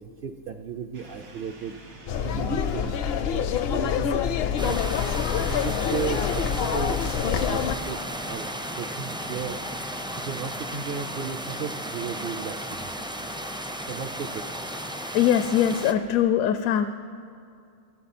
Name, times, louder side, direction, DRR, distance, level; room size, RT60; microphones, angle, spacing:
voice 1, 0.0-1.7 2.2-4.8 5.5-8.0 8.2-8.5 8.8-9.6 10.2-12.9 13.9-14.4, right 6 dB, 55° right, 6 dB, 0.6 m, -35 dB
sound 1, 0.9-12.6, right 1 dB, 75° right, 2.4 m, -50 dB
sound 2, 2.1-7.8, left 8 dB, 60° left, 0.7 m, -26 dB
sound 3, 4.6-15.9, equal, 5° right, 0.3 m, -34 dB
voice 2, 15.1-16.8, left 10 dB, 80° left, 9 dB, 1.0 m, -21 dB
24.5 x 13.5 x 4.3 m, 2.4 s
omnidirectional pair, 1.4 m